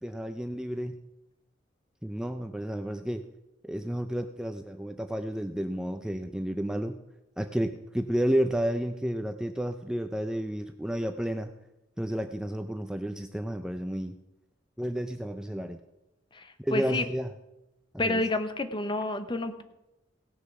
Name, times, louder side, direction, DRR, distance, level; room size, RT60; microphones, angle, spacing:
voice 1, 0.0-0.9 2.0-3.2 3.6-7.0 7.4-11.5 12.0-14.2 14.8-15.8 16.6-17.3 17.9-18.2, equal, 5° right, 7 dB, 0.5 m, -31 dB
voice 2, 16.3-17.0 18.0-19.6, left 2 dB, 25° left, 9 dB, 0.8 m, -29 dB
17.5 x 6.6 x 5.9 m, 0.94 s
head